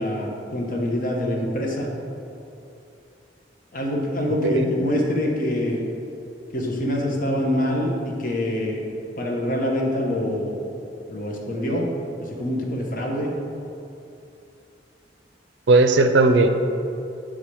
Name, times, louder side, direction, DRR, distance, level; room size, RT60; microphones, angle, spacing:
voice 1, 0.0-1.9 3.7-5.9 6.5-8.8 9.2-10.6 11.1-11.9 12.2-13.3, left 1 dB, 50° left, -1 dB, 1.1 m, -25 dB
voice 2, 4.4-4.7 15.7-16.5, right 3 dB, 80° right, 7 dB, 0.5 m, -17 dB
8.6 x 3.6 x 4.7 m, 2.7 s
head